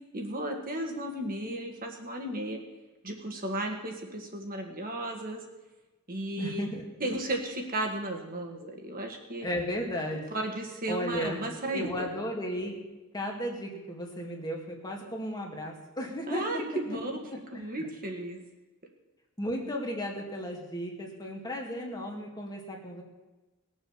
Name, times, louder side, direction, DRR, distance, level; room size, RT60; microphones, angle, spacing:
voice 1, 0.1-2.6 3.0-5.4 6.1-6.6 7.0-9.5 10.3-12.1 16.3-17.1 17.5-18.4, right 1 dB, 40° right, 2 dB, 1.8 m, -34 dB
voice 2, 6.4-6.8 9.4-10.2 10.9-12.8 13.1-16.6 17.3-17.9 19.4-23.0, equal, 20° left, 0 dB, 2.2 m, -35 dB
19.5 x 7.3 x 7.2 m, 1.1 s
head